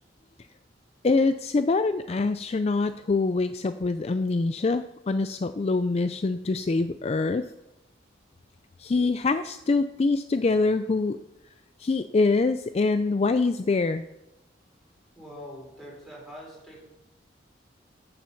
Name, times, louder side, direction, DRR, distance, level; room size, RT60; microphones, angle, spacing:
voice 1, 1.0-7.4 8.8-11.2 11.8-14.0, left 3 dB, 35° left, 11 dB, 0.4 m, -24 dB
voice 2, 14.7-16.9, equal, ahead, -4 dB, 4.9 m, -46 dB
14.0 x 7.5 x 5.8 m, 0.93 s
head